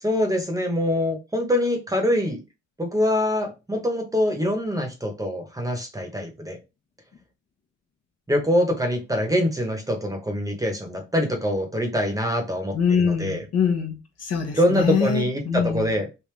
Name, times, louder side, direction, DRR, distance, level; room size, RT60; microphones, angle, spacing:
voice 1, 0.0-2.4 2.8-6.6 8.3-13.4 14.5-16.0, equal, 10° right, 1.0 m, -24 dB
voice 2, 12.7-15.9, left 6 dB, 55° left, 1.0 m, -24 dB
3.4 x 2.6 x 3.3 m
cardioid pair, 90°, 30 cm